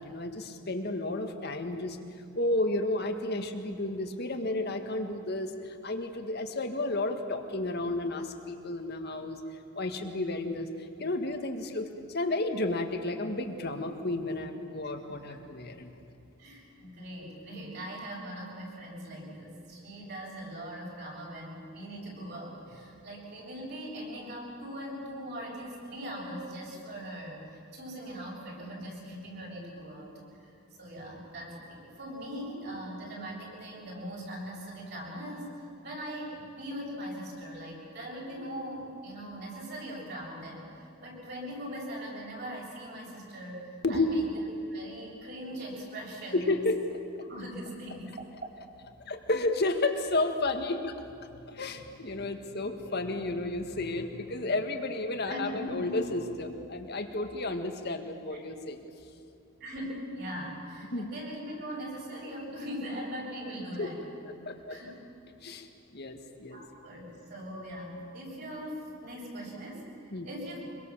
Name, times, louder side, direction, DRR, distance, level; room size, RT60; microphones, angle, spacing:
voice 1, 0.0-2.0 2.4-15.9 43.8-44.2 46.3-46.8 49.1-51.0 51.2-58.8 60.9-61.1 63.8-63.9 64.2-64.8 65.4-65.7 65.9-66.6 70.1-70.3, left 2 dB, 50° left, 6 dB, 1.9 m, -32 dB
voice 2, 14.8-15.4 16.4-35.5 35.8-44.4 44.7-46.6 47.3-48.7 55.2-56.0 59.6-64.0 64.7-64.9 66.5-70.6, equal, 50° right, -3 dB, 7.2 m, -41 dB
25.0 x 23.0 x 7.4 m, 2.6 s
head